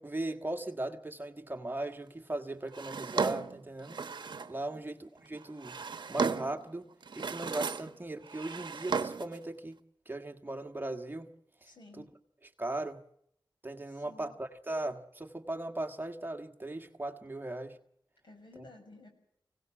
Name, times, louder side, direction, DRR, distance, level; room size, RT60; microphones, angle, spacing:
voice 1, 0.0-4.0 4.5-5.8 6.1-6.9 7.1-9.8 10.0-11.3 11.6-12.1 12.4-13.0 13.6-17.8 18.5-18.7, right 2 dB, 25° right, 6 dB, 1.6 m, -38 dB
Drawer open or close, 2.7-4.6 5.4-6.6 7.0-8.0 8.2-9.4, right 5 dB, 65° right, 0.9 m, -35 dB
voice 2, 11.7-12.1 14.0-14.4 18.2-19.1, left 2 dB, 65° left, 5 dB, 6.3 m, -53 dB
25.0 x 17.5 x 7.3 m, 0.72 s
wide cardioid pair, 105°, 8 cm